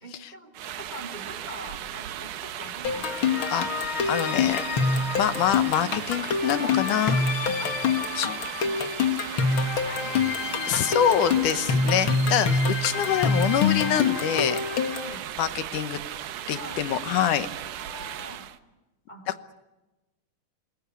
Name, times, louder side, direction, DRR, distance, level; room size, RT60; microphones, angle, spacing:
voice 1, 0.0-3.8 4.9-5.1 7.2-7.3 9.3-10.3 10.9-11.1 11.8-12.1 12.9-13.1 14.9-15.3 16.5-16.9 17.6-18.4 19.1-19.2, equal, 15° right, 7 dB, 2.7 m, -44 dB
sound 1, 0.5-18.6, right 11 dB, 80° right, 2.6 m, -37 dB
sound 2, 2.8-15.1, left 5 dB, 50° left, 2.0 m, -26 dB
voice 2, 4.1-4.6 5.2-7.2 8.1-8.3 10.7-14.6 15.4-16.0 16.5-17.5, left 10 dB, 80° left, 11 dB, 2.6 m, -25 dB
27.5 x 21.5 x 8.4 m, 1.1 s
omnidirectional pair, 3.6 m